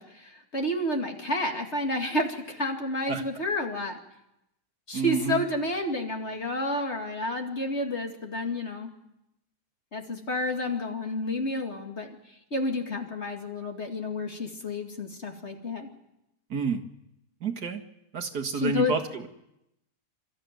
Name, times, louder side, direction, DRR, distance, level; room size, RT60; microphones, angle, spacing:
voice 1, 0.0-4.0 4.9-8.9 9.9-12.2 12.5-15.9 18.6-18.9, left 1 dB, 40° left, 3 dB, 2.6 m, -30 dB
voice 2, 4.9-5.4 16.5-16.8 17.4-17.8 18.1-19.3, right 5 dB, 65° right, 5 dB, 2.2 m, -29 dB
28.0 x 13.5 x 9.3 m, 0.87 s
omnidirectional pair, 1.8 m